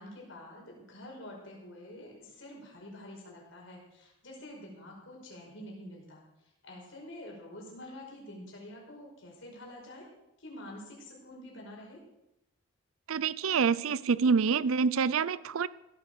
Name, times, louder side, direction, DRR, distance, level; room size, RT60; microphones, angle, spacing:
voice 1, 0.0-6.2 6.6-10.1 10.4-12.0, left 1 dB, 60° left, -1 dB, 5.2 m, -47 dB
voice 2, 13.1-15.7, right 5 dB, 70° right, 18 dB, 0.5 m, -26 dB
16.5 x 8.7 x 6.7 m, 0.91 s
head